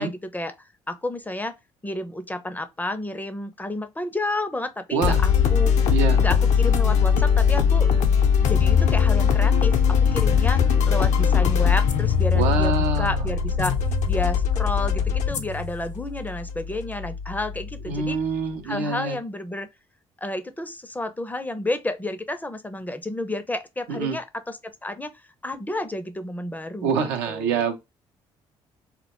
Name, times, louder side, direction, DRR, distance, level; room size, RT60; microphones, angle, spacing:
voice 1, 0.0-1.6 1.8-5.9 6.2-7.9 8.4-13.8 14.1-18.2 18.6-19.7 20.2-25.1 25.4-27.7, left 1 dB, 15° left, 0.4 m, -31 dB
sound 1, 5.0-18.4, left 7 dB, 65° left, 0.5 m, -21 dB
voice 2, 5.9-6.2 12.3-13.2 17.9-19.2 23.9-24.2 26.8-27.8, right 5 dB, 85° right, 0.5 m, -25 dB
2.1 x 2.1 x 2.9 m
hypercardioid pair, 55°, 13 cm